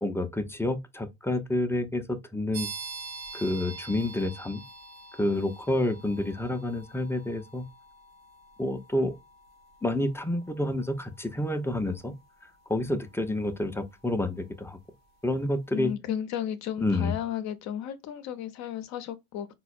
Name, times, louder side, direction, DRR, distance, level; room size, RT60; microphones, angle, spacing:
voice 1, 0.0-2.7 3.3-4.6 5.2-7.6 8.6-9.1 9.8-12.1 12.7-14.8 15.2-15.9 16.8-17.1, left 1 dB, 5° left, 0.5 m, -29 dB
sound 1, 2.5-15.1, right 4 dB, 50° right, 0.7 m, -46 dB
voice 2, 15.7-19.5, left 9 dB, 55° left, 0.7 m, -34 dB
4.0 x 2.1 x 2.4 m
hypercardioid pair, 70°, 34 cm